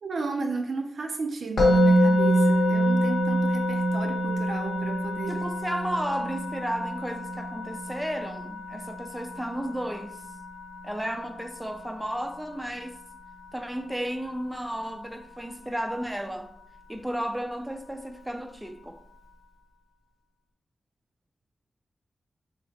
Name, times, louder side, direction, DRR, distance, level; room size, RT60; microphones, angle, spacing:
voice 1, 0.0-5.4, right 3 dB, 75° right, 0.4 m, -34 dB
Musical instrument, 1.6-12.7, equal, 90° left, 0.8 m, -26 dB
voice 2, 5.3-10.2 10.8-13.0 13.5-16.5 16.9-19.0, equal, 10° right, 0.3 m, -33 dB
3.1 x 2.8 x 2.7 m
cardioid pair, 50°, 0 cm